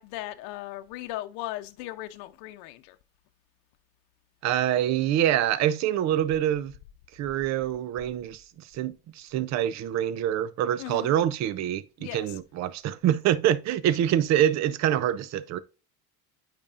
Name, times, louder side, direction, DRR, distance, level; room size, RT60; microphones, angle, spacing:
voice 1, 0.0-3.0 10.8-11.1 12.0-12.3, left 15 dB, 85° left, 0.7 m, -37 dB
voice 2, 4.4-6.7 7.1-8.4 8.7-15.6, right 11 dB, 45° right, 0.6 m, -25 dB
8.8 x 5.2 x 2.5 m
cardioid pair, 155°, 39 cm